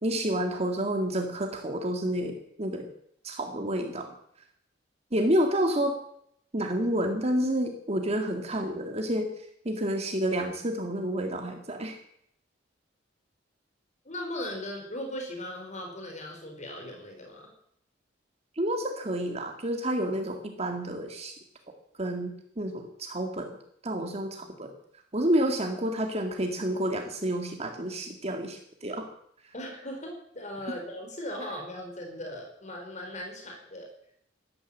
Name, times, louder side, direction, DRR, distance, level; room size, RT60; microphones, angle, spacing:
voice 1, 0.0-2.9 3.2-4.1 5.1-6.0 6.5-12.0 18.6-21.4 22.0-23.5 23.8-24.7 25.1-29.1, right 1 dB, 35° right, 4 dB, 2.0 m, -29 dB
voice 2, 14.0-17.5 29.5-33.9, left 1 dB, 40° left, 2 dB, 4.8 m, -38 dB
13.0 x 12.5 x 8.6 m, 0.70 s
head